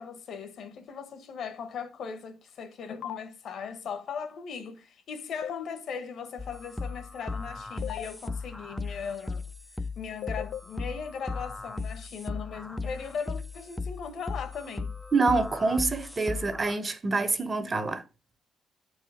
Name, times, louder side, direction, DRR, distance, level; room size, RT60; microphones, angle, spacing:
voice 1, 0.0-9.4 9.9-15.0, left 6 dB, 65° left, 1.2 m, -38 dB
sound 1, 3.0-3.2 5.4-5.6 7.8-8.0 10.2-10.6, left 11 dB, 80° left, 0.3 m, -35 dB
sound 2, 6.4-16.8, left 3 dB, 10° left, 0.5 m, -37 dB
voice 2, 15.1-18.0, right 3 dB, 25° right, 1.0 m, -26 dB
8.5 x 4.8 x 4.9 m
cardioid pair, 130°, 0 cm